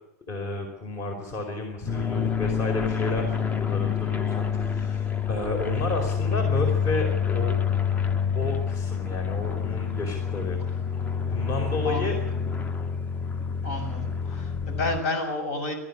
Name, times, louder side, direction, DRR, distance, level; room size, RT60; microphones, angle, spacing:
voice 1, 0.3-7.5 8.4-10.8 11.3-12.2, left 2 dB, 35° left, 4 dB, 4.7 m, -32 dB
sound 1, 1.9-15.0, left 7 dB, 20° left, 0.9 m, -27 dB
voice 2, 13.6-15.7, left 2 dB, 60° left, 7 dB, 6.4 m, -30 dB
19.5 x 13.5 x 9.9 m, 0.78 s
hypercardioid pair, 105°, 9 cm